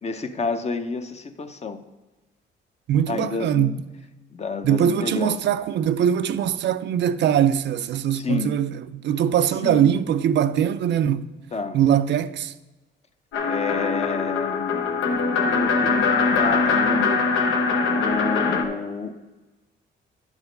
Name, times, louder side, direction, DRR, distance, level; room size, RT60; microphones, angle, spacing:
voice 1, 0.0-1.8 3.1-3.7 4.3-5.4 8.1-8.5 9.6-9.8 11.5-11.8 13.4-14.8 15.5-17.3 17.8-19.2, left 4 dB, 35° left, 0.7 m, -29 dB
voice 2, 2.9-3.8 4.6-11.3 11.7-12.5, right 9 dB, 65° right, 0.4 m, -22 dB
sound 1, 13.3-18.6, left 4 dB, 85° left, 1.0 m, -22 dB
10.5 x 4.9 x 5.2 m
cardioid pair, 90°, 20 cm